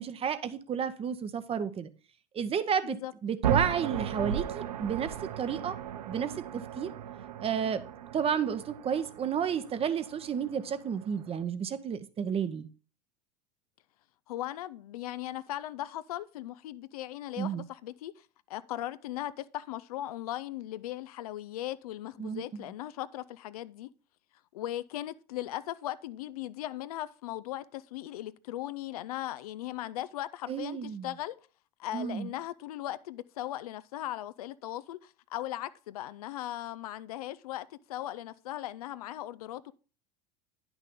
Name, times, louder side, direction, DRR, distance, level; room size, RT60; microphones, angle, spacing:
voice 1, 0.0-1.9 2.3-5.8 6.1-6.9 7.4-7.8 8.1-12.7 17.4-17.6 22.2-22.4 30.5-31.1 31.9-32.3, right 7 dB, 30° right, 0.9 m, -31 dB
sound 1, 3.4-11.4, right 10 dB, 70° right, 0.7 m, -36 dB
voice 2, 14.3-23.9 24.5-31.4 31.8-39.7, left 14 dB, 65° left, 0.5 m, -38 dB
10.5 x 6.1 x 3.7 m
figure-of-eight pair, 80°, 21 cm